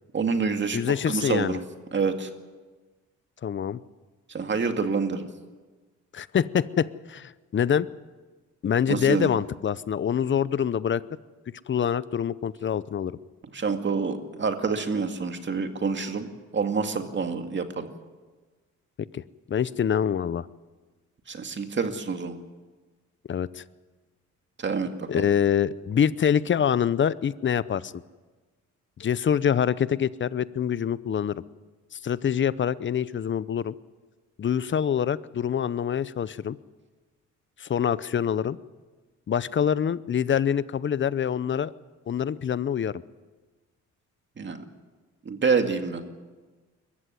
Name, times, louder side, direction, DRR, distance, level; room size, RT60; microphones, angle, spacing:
voice 1, 0.1-1.6 1.9-2.3 4.3-5.3 8.9-9.3 13.5-16.3 16.5-17.9 21.3-22.4 24.6-25.3 44.4-44.6 45.3-46.0, right 5 dB, 40° right, 6 dB, 2.2 m, -27 dB
voice 2, 0.7-1.6 3.4-3.8 6.1-7.9 8.6-11.0 11.7-13.1 19.1-19.2 19.5-20.5 23.3-23.6 25.1-27.9 29.0-31.4 31.9-33.7 34.4-36.6 37.6-38.6 39.3-41.7 42.1-43.0, left 8 dB, 40° left, 18 dB, 0.7 m, -25 dB
21.5 x 14.5 x 9.6 m, 1.3 s
cardioid pair, 90°, 30 cm